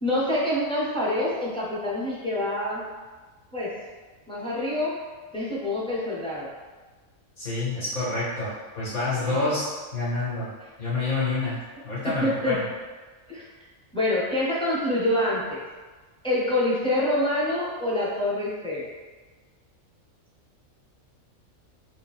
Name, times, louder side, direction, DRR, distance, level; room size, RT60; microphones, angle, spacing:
voice 1, 0.0-2.8 3.5-3.7 4.3-4.9 5.3-6.5 9.2-9.6 12.2-12.6 13.3-13.4 13.9-15.6 16.2-18.9, left 1 dB, 5° left, -6 dB, 0.5 m, -26 dB
voice 2, 7.4-9.7 9.9-10.5 10.8-11.6 11.8-12.6, left 3 dB, 60° left, -11 dB, 1.9 m, -28 dB
4.2 x 2.7 x 3.5 m, 1.3 s
omnidirectional pair, 1.5 m